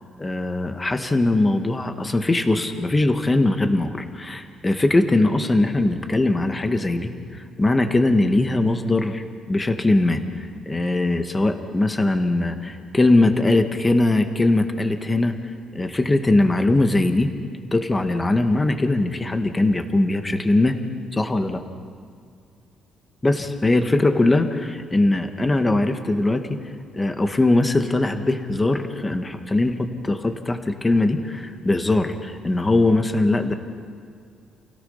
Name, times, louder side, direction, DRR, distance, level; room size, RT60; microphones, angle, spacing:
voice 1, 0.2-10.2 10.7-15.3 15.7-17.3 17.7-20.8 21.1-21.6 23.2-26.5 26.9-33.6, left 2 dB, 15° left, 6 dB, 1.5 m, -21 dB
28.5 x 17.5 x 5.7 m, 2.2 s
cardioid pair, 125°, 0 cm